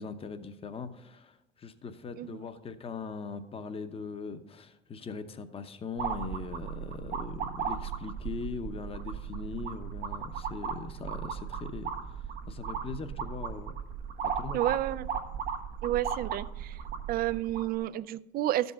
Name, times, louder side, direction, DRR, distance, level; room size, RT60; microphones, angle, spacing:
voice 1, 0.0-13.8 14.2-14.6, left 5 dB, 35° left, 10 dB, 0.8 m, -40 dB
sound 1, 6.0-17.8, right 7 dB, 80° right, 1.2 m, -36 dB
voice 2, 14.5-15.1 15.8-16.8 17.1-18.7, right 14 dB, 60° right, 17 dB, 0.4 m, -30 dB
12.0 x 5.4 x 5.7 m, 0.91 s
cardioid pair, 110°, 17 cm